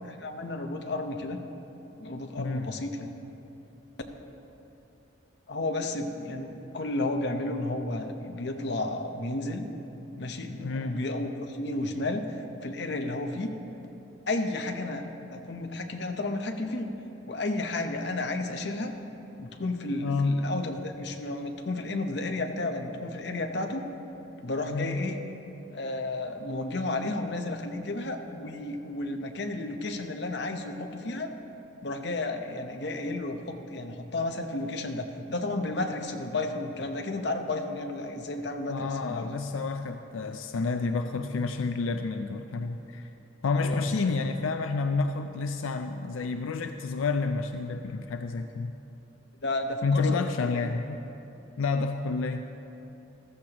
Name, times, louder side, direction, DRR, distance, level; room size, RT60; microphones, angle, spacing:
voice 1, 0.0-1.4 2.0-3.1 5.5-9.6 10.2-12.2 12.6-13.5 14.3-15.0 15.3-16.9 17.3-18.9 19.4-23.8 24.4-25.2 25.7-31.3 31.8-39.3 43.5-43.9 49.4-50.2 50.5-50.6, left 2 dB, 60° left, 5 dB, 0.8 m, -32 dB
voice 2, 2.4-2.8 10.6-10.9 20.0-20.4 24.7-25.1 38.7-43.1 43.4-48.7 49.8-51.0 51.6-52.5, left 4 dB, 85° left, 7 dB, 0.4 m, -29 dB
14.5 x 13.5 x 2.9 m, 3.0 s
head